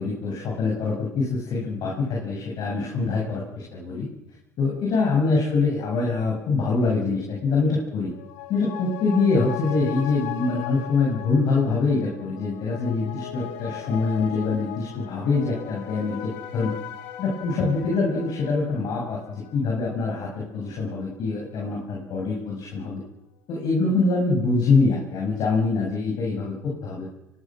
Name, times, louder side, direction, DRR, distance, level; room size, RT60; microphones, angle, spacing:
voice 1, 0.0-4.1 4.6-8.1 8.5-16.7 17.2-23.0 23.5-27.1, left 4 dB, 60° left, -2 dB, 7.4 m, -24 dB
sound 1, 8.0-20.9 21.2-21.3, left 11 dB, 75° left, 2.2 m, -39 dB
24.0 x 22.0 x 6.4 m, 0.95 s
hypercardioid pair, 80°, 8 cm